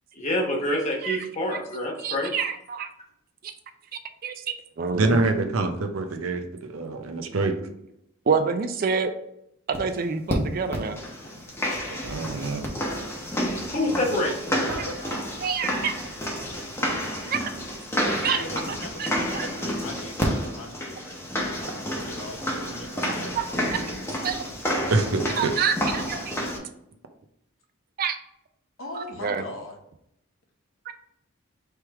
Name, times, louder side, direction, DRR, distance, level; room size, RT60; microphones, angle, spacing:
voice 1, 0.2-2.3 13.7-14.3, left 1 dB, 35° left, -2 dB, 1.0 m, -26 dB
voice 2, 1.0-1.6 2.0-2.9 3.4-3.5 4.2-5.2 8.3-9.1 9.7-11.0 14.8-16.0 17.2-17.5 18.1-18.4 19.0-19.5 23.4-23.8 24.2-24.5 25.4-26.3 28.0-28.2 28.9-29.4 30.9-31.0, right 6 dB, 45° right, 9 dB, 0.3 m, -28 dB
voice 3, 4.9-7.5 11.9-12.6 14.7-15.0 24.9-25.5, right 3 dB, 85° right, 6 dB, 0.6 m, -26 dB
sound 1, 9.7-9.8 10.3-10.4 10.7-26.6, equal, 10° left, 0.7 m, -30 dB
voice 4, 18.4-21.4 22.0-23.4 28.8-29.8, left 2 dB, 70° left, 1 dB, 0.9 m, -40 dB
3.3 x 3.1 x 4.6 m, 0.78 s
head